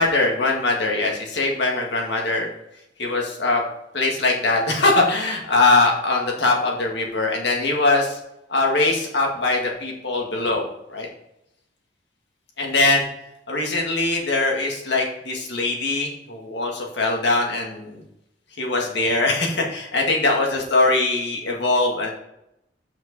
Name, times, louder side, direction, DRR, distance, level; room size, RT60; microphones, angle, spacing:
voice 1, 0.0-2.5 3.0-3.6 3.9-8.2 8.5-11.1 12.6-13.1 13.5-18.0 18.6-22.1, left 2 dB, 65° left, 0 dB, 2.0 m, -21 dB
7.5 x 6.0 x 4.1 m, 0.82 s
head